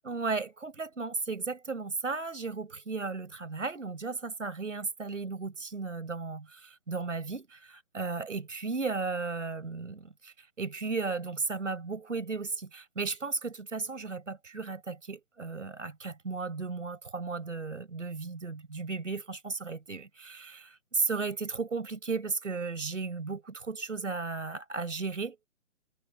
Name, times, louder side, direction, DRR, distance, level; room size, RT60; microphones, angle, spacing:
voice 1, 0.0-25.4, right 4 dB, 80° right, 5.9 m, -35 dB
figure-of-eight pair, 140°, 37 cm